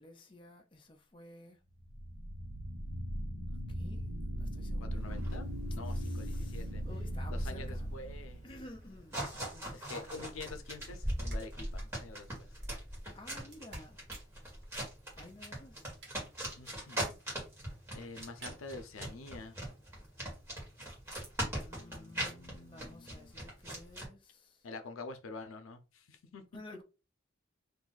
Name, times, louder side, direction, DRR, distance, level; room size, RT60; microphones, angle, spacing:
voice 1, 0.0-1.6 3.7-5.0 5.8-7.9 8.4-10.3 13.1-14.0 15.2-15.8 21.4-24.7 26.5-26.8, left 1 dB, 25° left, 0.5 m, -53 dB
sound 1, 1.8-8.8, equal, 85° right, 1.0 m, -38 dB
voice 2, 4.8-6.8 7.3-8.4 9.7-12.5 16.6-17.2 17.9-19.6 21.7-23.3 24.6-26.4, left 3 dB, 90° left, 0.5 m, -47 dB
sound 2, 5.0-24.1, right 1 dB, 15° right, 1.4 m, -41 dB
sound 3, 10.9-11.0 11.3-16.5 16.8-16.9 17.1-17.2 17.4-17.8 18.2-18.6, right 2 dB, 55° right, 1.3 m, -53 dB
2.6 x 2.3 x 3.9 m
head